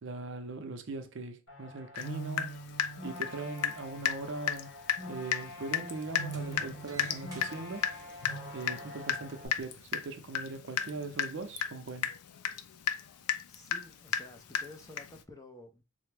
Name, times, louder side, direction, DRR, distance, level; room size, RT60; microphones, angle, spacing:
voice 1, 0.0-2.6 3.0-4.7 5.1-7.8 8.5-12.1, right 3 dB, 55° right, 0.5 m, -40 dB
sound 1, 1.5-9.5, right 1 dB, 65° left, 1.1 m, -44 dB
Water tap faucet / Drip, 1.9-2.1 2.4-3.8 4.0-4.2 4.5-4.6 4.9-5.0 5.3-5.5 5.7-15.2, left 9 dB, 90° left, 0.4 m, -33 dB
Sliding door, 2.8-9.6, right 1 dB, 15° right, 0.8 m, -55 dB
voice 2, 13.5-15.8, left 2 dB, 15° left, 0.4 m, -51 dB
3.3 x 2.0 x 3.2 m
head